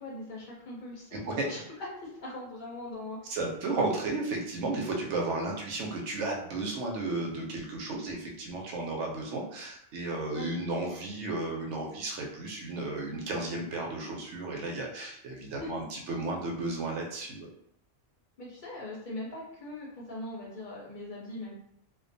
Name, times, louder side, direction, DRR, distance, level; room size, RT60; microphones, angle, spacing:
voice 1, 0.0-3.4 3.7-3.8 10.3-10.5 15.6-15.7 18.4-21.5, left 2 dB, 50° left, -4 dB, 0.7 m, -41 dB
voice 2, 1.1-1.5 3.3-17.5, right 2 dB, 85° right, 0 dB, 0.9 m, -33 dB
2.4 x 2.2 x 2.6 m, 0.72 s
omnidirectional pair, 1.2 m